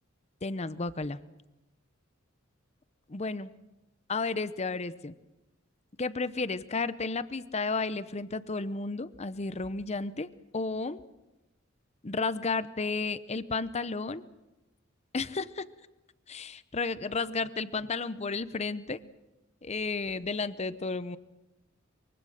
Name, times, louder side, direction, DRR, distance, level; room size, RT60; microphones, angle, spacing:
voice 1, 0.4-1.2 3.1-3.5 4.1-5.1 6.0-10.3 10.5-11.0 12.0-14.2 15.1-15.7 16.3-19.0 19.6-21.2, left 3 dB, 35° left, 15 dB, 0.8 m, -32 dB
24.0 x 23.0 x 6.5 m, 0.99 s
head